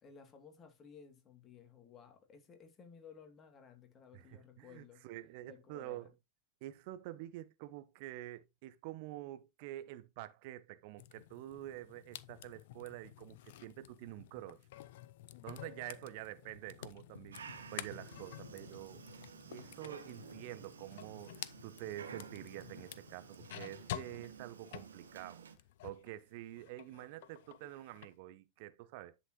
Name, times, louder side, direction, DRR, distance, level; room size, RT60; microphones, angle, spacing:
voice 1, 0.0-5.0 5.4-6.1, left 6 dB, 25° left, 2.5 m, -57 dB
voice 2, 4.1-6.1 6.6-14.6 15.4-19.0 19.5-25.5 25.8-29.1, right 15 dB, 50° right, 0.9 m, -48 dB
sound 1, 11.0-26.1 26.5-28.1, left 13 dB, 55° left, 0.6 m, -51 dB
sound 2, 16.5-19.7, left 4 dB, 75° left, 1.2 m, -60 dB
Dog, 17.3-25.6, right 6 dB, 70° right, 1.3 m, -53 dB
11.0 x 6.3 x 3.0 m
figure-of-eight pair, 90°, 0 cm